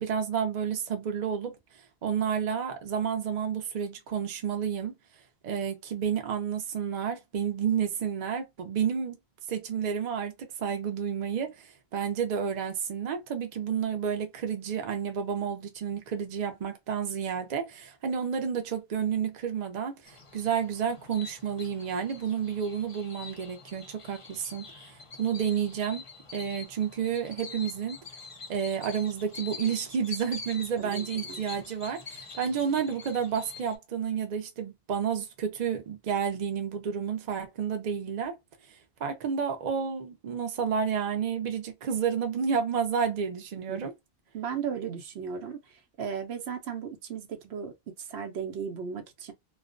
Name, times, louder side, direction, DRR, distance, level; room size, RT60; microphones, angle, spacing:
voice 1, 0.0-1.6 2.0-4.9 5.4-9.2 9.5-26.0 26.3-28.0 28.5-38.3 39.0-43.9, right 7 dB, 50° right, 0.7 m, -30 dB
sound 1, 20.1-33.8, left 4 dB, 40° left, 0.5 m, -45 dB
voice 2, 30.8-31.4 43.7-43.8 44.3-49.3, right 7 dB, 90° right, 0.9 m, -36 dB
2.4 x 2.2 x 2.4 m
omnidirectional pair, 1.0 m